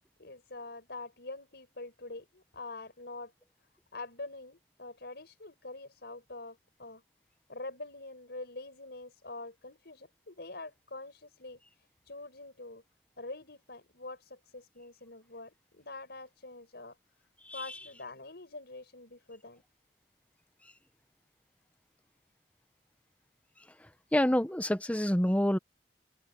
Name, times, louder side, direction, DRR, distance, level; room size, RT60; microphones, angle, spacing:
voice 1, 0.0-3.3 3.9-7.0 7.5-11.6 12.1-12.8 13.2-17.0 17.5-19.6, left 2 dB, 65° left, 6.9 m, -45 dB
voice 2, 24.1-25.6, equal, 10° left, 1.1 m, -27 dB
head